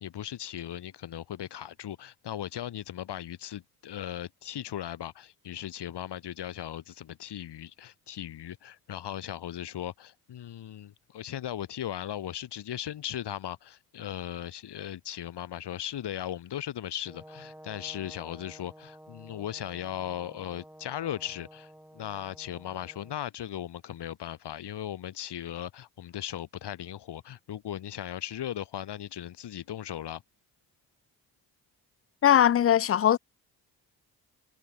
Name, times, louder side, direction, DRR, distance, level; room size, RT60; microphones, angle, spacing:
voice 1, 0.0-30.2, left 11 dB, 55° left, 1.9 m, -37 dB
Brass instrument, 17.0-23.2, equal, 5° right, 3.7 m, -51 dB
voice 2, 32.2-33.2, left 10 dB, 30° left, 0.5 m, -20 dB
hypercardioid pair, 45°, 47 cm